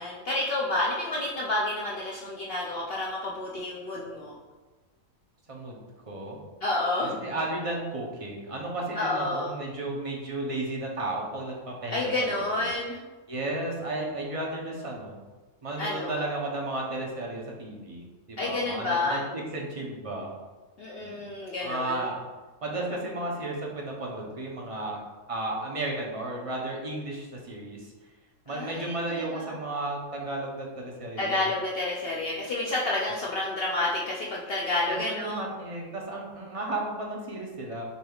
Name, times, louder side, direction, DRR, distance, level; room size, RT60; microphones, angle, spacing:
voice 1, 0.0-4.4 6.6-7.2 9.0-9.5 11.9-13.0 15.8-16.2 18.4-19.2 20.8-22.1 28.5-29.5 31.2-35.4, left 2 dB, 60° left, -3 dB, 0.7 m, -29 dB
voice 2, 5.5-5.8 6.1-6.4 7.0-12.7 13.3-15.2 15.6-20.3 21.0-21.2 21.6-22.2 22.6-25.0 25.3-27.9 28.5-31.5 34.9-37.8, right 2 dB, 35° right, -1 dB, 0.6 m, -34 dB
6.8 x 3.4 x 2.3 m, 1.3 s
omnidirectional pair, 1.4 m